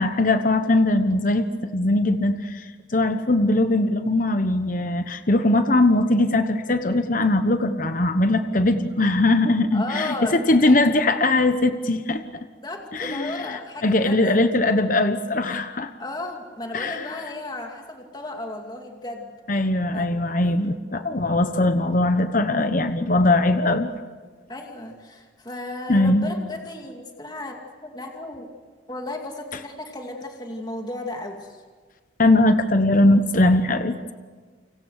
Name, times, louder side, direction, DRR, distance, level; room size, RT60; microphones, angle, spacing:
voice 1, 0.0-12.5 12.9-15.9 16.7-17.1 19.5-23.9 25.9-26.3 32.2-34.0, left 2 dB, 45° left, 8 dB, 1.1 m, -20 dB
voice 2, 9.7-10.8 12.6-14.4 16.0-19.3 19.9-20.6 24.5-28.5 28.9-31.6, left 2 dB, 25° left, 2 dB, 2.5 m, -34 dB
29.5 x 26.0 x 6.6 m, 1.5 s
head